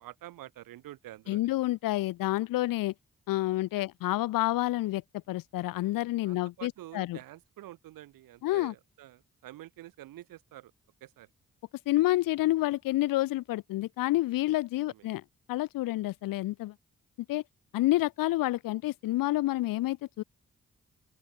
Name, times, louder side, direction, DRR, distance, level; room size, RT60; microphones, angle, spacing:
voice 1, 0.0-1.5 3.8-3.9 6.2-10.7 11.0-11.3 14.9-15.1, right 15 dB, 85° right, 5.5 m, -48 dB
voice 2, 1.3-2.9 3.3-5.0 5.3-7.2 8.4-8.7 11.9-15.2 15.5-16.7 17.3-17.4 17.7-20.2, left 17 dB, 80° left, 0.8 m, -28 dB
open air
supercardioid pair, 40°, 33 cm